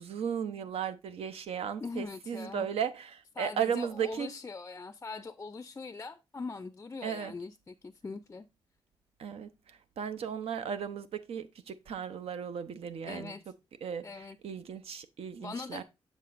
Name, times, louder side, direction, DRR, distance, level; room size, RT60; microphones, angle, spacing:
voice 1, 0.0-4.4 7.0-7.3 9.2-13.3 13.8-15.8, right 8 dB, 85° right, 0.7 m, -36 dB
voice 2, 1.8-2.7 3.4-8.5 13.1-13.4 14.0-14.4 15.4-15.8, left 4 dB, 25° left, 0.4 m, -41 dB
7.5 x 6.9 x 2.5 m
wide cardioid pair, 120°, 10 cm